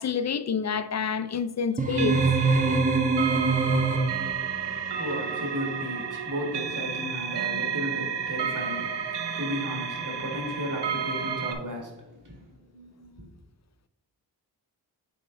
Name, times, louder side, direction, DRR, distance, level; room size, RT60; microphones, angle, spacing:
voice 1, 0.0-2.2, left 6 dB, 45° left, 0.4 m, -28 dB
sound 1, 1.8-4.4, right 3 dB, 20° right, 0.8 m, -23 dB
sound 2, 1.9-11.5, right 7 dB, 85° right, 0.7 m, -31 dB
voice 2, 4.3-13.3, equal, 50° right, 1.9 m, -35 dB
7.6 x 3.8 x 3.9 m
cardioid pair, 65°, 40 cm